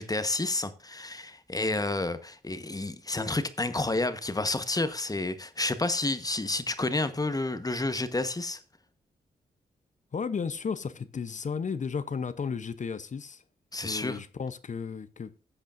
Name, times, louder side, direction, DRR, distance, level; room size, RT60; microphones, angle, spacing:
voice 1, 0.0-8.6 13.7-14.2, left 2 dB, 20° left, 1.2 m, -30 dB
voice 2, 10.1-13.4 13.8-15.3, left 5 dB, 45° left, 0.8 m, -34 dB
14.5 x 8.2 x 2.6 m
cardioid pair, 70°, 17 cm